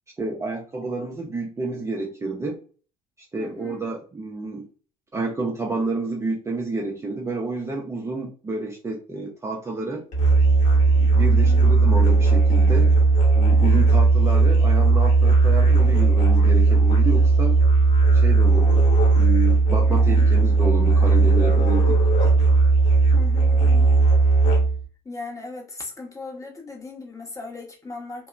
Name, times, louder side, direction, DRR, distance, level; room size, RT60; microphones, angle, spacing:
voice 1, 0.2-2.6 3.2-4.7 5.1-10.0 11.0-12.9 13.4-17.6 18.1-18.9 19.2-22.0, right 3 dB, 15° right, -1 dB, 0.5 m, -29 dB
voice 2, 3.4-3.8 11.2-11.7 19.9-20.3 23.1-24.3 25.0-28.3, left 3 dB, 15° left, 1 dB, 0.8 m, -38 dB
Musical instrument, 10.1-24.9, right 3 dB, 35° left, 1.1 m, -17 dB
2.8 x 2.1 x 2.3 m, 0.38 s
figure-of-eight pair, 60°, 20 cm